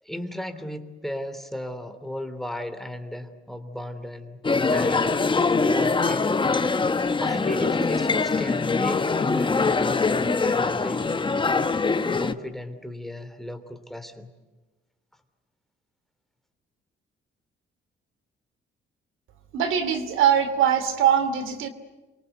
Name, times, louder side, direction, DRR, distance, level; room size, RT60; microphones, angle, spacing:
voice 1, 0.0-5.2 5.6-6.4 7.2-11.6 12.2-14.3, left 1 dB, ahead, 7 dB, 3.0 m, -35 dB
sound 1, 4.4-12.3, left 4 dB, 25° left, 1.3 m, -23 dB
voice 2, 19.5-21.7, right 9 dB, 85° right, 11 dB, 2.7 m, -22 dB
28.5 x 24.0 x 8.1 m, 1.2 s
cardioid pair, 90°, 20 cm